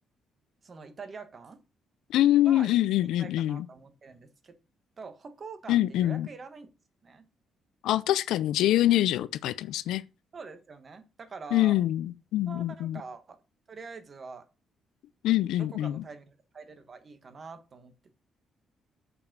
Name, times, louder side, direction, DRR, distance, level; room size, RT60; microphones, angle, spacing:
voice 1, 0.6-1.6 2.4-2.7 3.2-4.5 5.0-6.7 7.0-7.3 10.3-11.8 12.4-13.4 13.7-14.5 15.6-17.9, right 4 dB, 40° right, 1.4 m, -45 dB
voice 2, 2.1-3.7 5.7-6.3 7.8-10.0 11.5-13.0 15.2-16.0, left 13 dB, 85° left, 0.5 m, -25 dB
6.9 x 5.4 x 6.1 m
cardioid pair, 90°, 0 cm